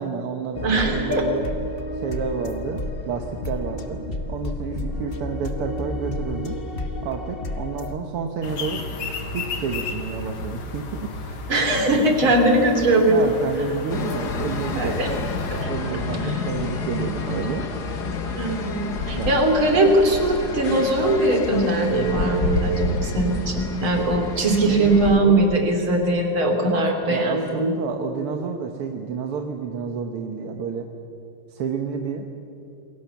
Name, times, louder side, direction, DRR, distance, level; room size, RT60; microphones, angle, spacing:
voice 1, 0.0-6.6 7.0-8.9 9.3-11.8 12.2-12.4 13.1-15.2 15.6-17.7 19.1-19.4 24.6-25.5 25.9-26.0 27.1-30.9 31.5-32.3, right 6 dB, 90° right, 4 dB, 2.2 m, -30 dB
sound 1, 0.5-7.9, left 1 dB, 30° left, 1.5 m, -31 dB
voice 2, 0.6-1.3 11.5-13.3 14.8-15.1 16.2-16.3 18.4-27.8, right 1 dB, 70° right, 4 dB, 3.9 m, -20 dB
sound 2, 8.4-15.7, left 3 dB, 70° left, 2.5 m, -33 dB
sound 3, 13.9-25.2, left 3 dB, 50° left, 2.2 m, -29 dB
28.5 x 22.5 x 7.1 m, 2.6 s
omnidirectional pair, 2.4 m